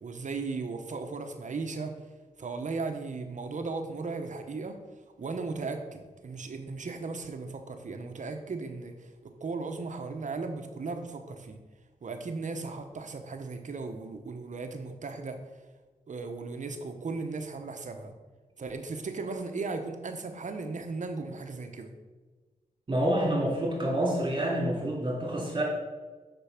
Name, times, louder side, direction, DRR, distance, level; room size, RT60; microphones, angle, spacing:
voice 1, 0.0-1.9 2.4-4.8 5.2-11.6 12.0-15.4 16.1-18.1 18.6-21.9, right 4 dB, 55° right, 6 dB, 1.1 m, -36 dB
voice 2, 22.9-25.6, right 1 dB, 35° right, -3 dB, 3.0 m, -28 dB
6.8 x 6.1 x 6.0 m, 1.3 s
cardioid pair, 75°, 15 cm